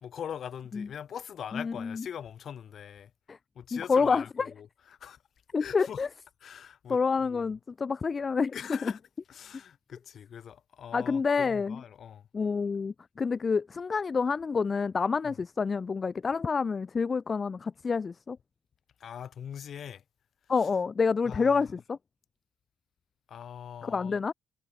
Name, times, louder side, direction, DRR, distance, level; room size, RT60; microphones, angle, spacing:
voice 1, 0.0-3.1 3.6-5.2 5.6-6.0 6.4-7.5 8.5-9.0 9.3-12.3 15.2-15.3 19.0-20.0 21.3-21.7 23.3-24.2, left 8 dB, 60° left, 3.4 m, -42 dB
voice 2, 1.5-2.0 3.3-3.4 3.7-4.5 5.5-6.1 6.9-8.9 10.9-11.8 12.3-18.4 20.5-22.0 23.8-24.3, left 5 dB, 35° left, 0.7 m, -28 dB
cardioid pair, 90°, 0 cm